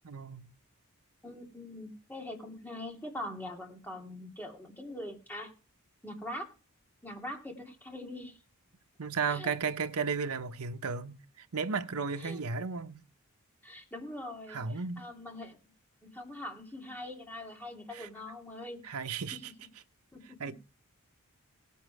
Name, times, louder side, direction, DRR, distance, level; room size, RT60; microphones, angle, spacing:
voice 1, 0.0-0.5 9.0-13.0 14.5-15.1 17.9-18.1 18.8-19.5 20.4-20.5, right 5 dB, 80° right, 0.9 m, -34 dB
voice 2, 1.2-5.5 6.0-6.5 7.0-8.4 9.3-9.6 12.2-12.4 13.6-14.6 15.0-15.6 16.1-18.8 20.1-20.5, left 1 dB, 10° left, 2.4 m, -42 dB
17.5 x 7.2 x 4.7 m
head